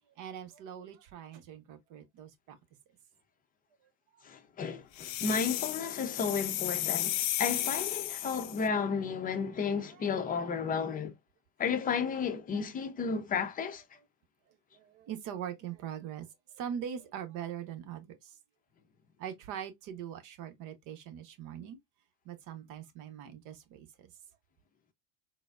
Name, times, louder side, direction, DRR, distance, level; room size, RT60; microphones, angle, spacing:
voice 1, 0.2-2.6 4.1-4.3 9.9-10.1 10.5-10.8 14.7-18.4 19.2-21.8 22.2-24.1, right 9 dB, 50° right, 0.9 m, -42 dB
voice 2, 4.2-11.1 11.6-13.8, left 5 dB, 20° left, 0.6 m, -33 dB
sound 1, 5.0-8.6, left 13 dB, 60° left, 0.6 m, -34 dB
3.9 x 2.1 x 2.4 m
hypercardioid pair, 85°, 41 cm